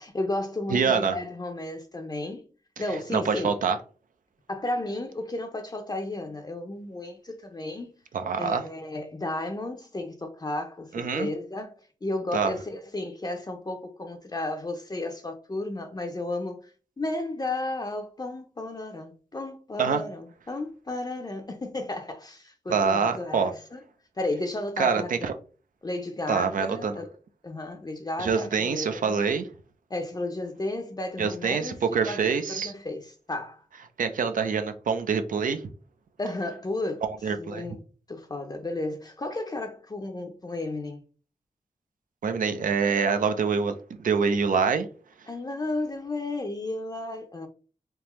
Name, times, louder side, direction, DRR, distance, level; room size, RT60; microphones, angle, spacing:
voice 1, 0.0-2.4 2.8-3.5 4.5-7.9 8.4-11.7 12.0-16.7 17.0-23.8 24.2-25.4 25.8-27.1 27.4-29.3 29.9-33.7 36.2-37.0 37.4-37.8 38.1-41.0 45.3-47.5, left 2 dB, 30° left, 0.5 m, -33 dB
voice 2, 0.7-1.2 3.1-3.8 8.1-8.6 10.9-11.3 12.3-12.5 19.8-20.0 22.7-23.5 24.8-25.3 26.3-26.9 28.2-29.5 31.2-32.7 34.0-35.6 37.0-37.8 42.2-44.9, right 5 dB, 85° right, 0.5 m, -25 dB
3.6 x 2.8 x 3.0 m
cardioid pair, 65°, 14 cm